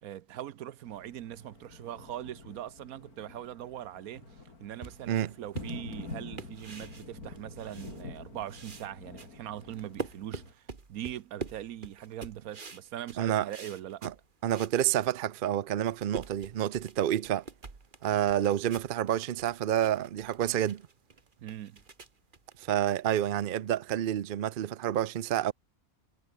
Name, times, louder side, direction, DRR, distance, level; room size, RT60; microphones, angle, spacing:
voice 1, 0.0-14.0 21.4-21.8, right 12 dB, 75° right, 1.2 m, -41 dB
Thunder, 0.9-10.5, left 3 dB, 85° left, 4.6 m, -47 dB
sound 1, 4.8-8.2 8.5-14.8 15.2-15.3 15.7-23.8, right 4 dB, 35° right, 1.8 m, -45 dB
voice 2, 13.2-13.5 14.0-14.1 14.4-17.4 18.0-20.8 22.6-25.5, right 11 dB, 55° right, 0.6 m, -29 dB
omnidirectional pair, 1.5 m